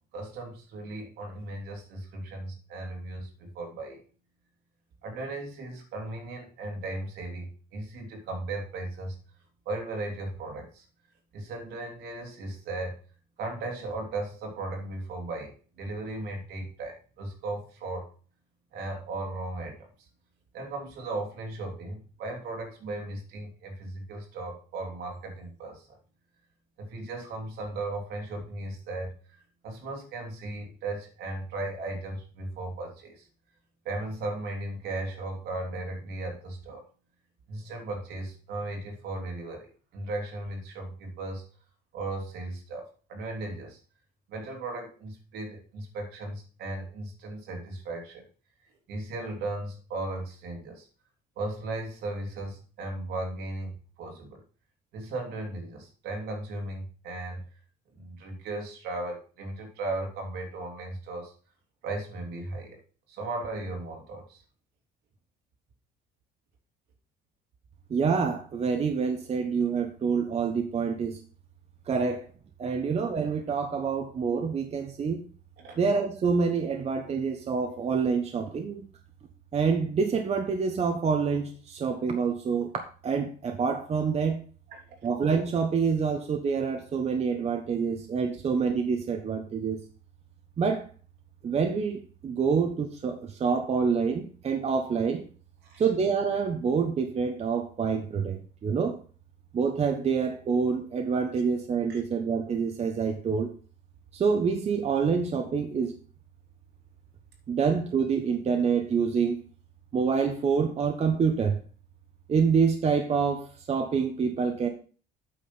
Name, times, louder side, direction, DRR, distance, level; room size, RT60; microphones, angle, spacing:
voice 1, 0.1-4.0 5.0-9.2 9.6-10.8 11.3-12.9 13.4-18.1 18.7-20.1 20.5-26.0 26.8-33.3 33.8-36.9 37.5-41.4 41.9-43.8 44.3-48.3 48.9-50.9 51.4-54.4 54.9-57.4 57.9-61.3 61.8-62.8 63.1-64.4 72.8-72.9 75.6-75.8 84.7-85.1 95.6-95.8 101.9-102.0, right 2 dB, 80° right, 1 dB, 3.0 m, -36 dB
voice 2, 67.9-71.2 71.9-72.2 72.6-75.3 75.8-78.8 79.5-82.7 83.0-84.4 85.0-89.8 90.6-90.8 91.4-95.2 95.8-99.0 99.5-103.5 104.1-105.9 107.5-109.4 109.9-111.6 112.3-114.7, right 5 dB, 40° right, 4 dB, 1.2 m, -27 dB
8.7 x 5.1 x 5.9 m, 0.40 s
cardioid pair, 110°, 17 cm